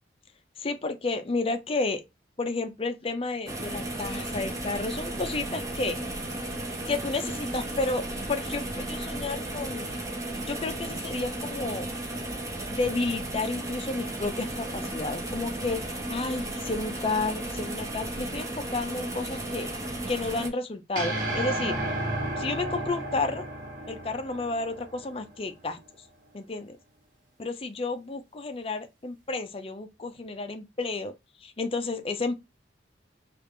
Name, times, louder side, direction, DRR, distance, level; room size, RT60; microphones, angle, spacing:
voice 1, 0.6-2.0 2.4-6.0 6.9-9.9 10.5-11.9 12.7-15.8 16.1-19.7 20.1-21.8 22.4-23.5 23.9-26.1 26.3-26.8 27.4-31.1 31.4-32.4, left 3 dB, 30° left, 0.4 m, -31 dB
sound 1, 3.5-20.5, right 1 dB, 20° right, 0.6 m, -34 dB
sound 2, 21.0-25.3, right 1 dB, 50° right, 1.0 m, -32 dB
3.4 x 2.4 x 3.2 m
head